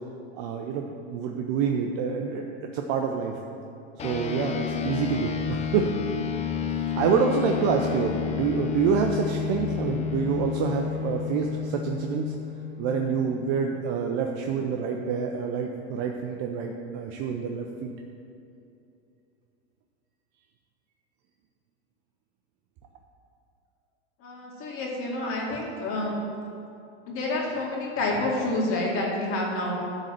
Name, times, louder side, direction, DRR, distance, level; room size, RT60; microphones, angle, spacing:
voice 1, 0.4-3.4 4.0-5.9 7.0-12.3 12.8-17.9, right 6 dB, 45° right, 2 dB, 0.7 m, -27 dB
sound 1, 4.0-13.7, left 8 dB, 20° left, 0.6 m, -31 dB
voice 2, 24.2-26.2 27.1-29.8, left 2 dB, 40° left, -2 dB, 2.2 m, -28 dB
12.0 x 4.0 x 7.5 m, 2.7 s
supercardioid pair, 130°, 33 cm